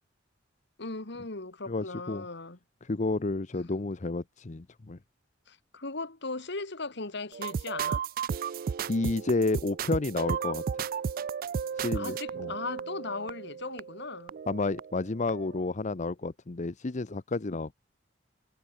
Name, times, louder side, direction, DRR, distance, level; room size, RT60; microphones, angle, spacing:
voice 1, 0.8-2.6 3.5-3.7 5.5-8.0 11.9-14.3, left 3 dB, 60° left, 2.3 m, -38 dB
voice 2, 1.7-2.3 2.8-5.0 8.9-10.6 11.8-12.5 14.5-17.7, left 3 dB, 40° left, 0.7 m, -31 dB
sound 1, 7.3-15.0 15.3-15.6, right 7 dB, 50° right, 0.3 m, -34 dB
head